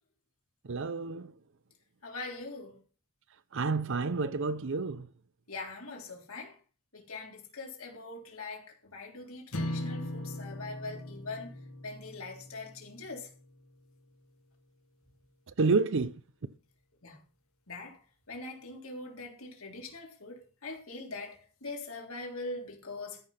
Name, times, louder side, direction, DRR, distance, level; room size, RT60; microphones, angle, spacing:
voice 1, 0.6-1.3 3.5-5.1 15.6-16.1, right 4 dB, 60° right, 0.6 m, -29 dB
voice 2, 2.0-2.8 5.5-6.6 6.9-11.5 11.8-13.3 17.0-17.2 17.7-18.0 18.3-23.2, left 3 dB, 70° left, 3.6 m, -42 dB
sound 1, 9.5-13.9, left 1 dB, 85° left, 1.7 m, -40 dB
13.5 x 6.0 x 5.7 m
head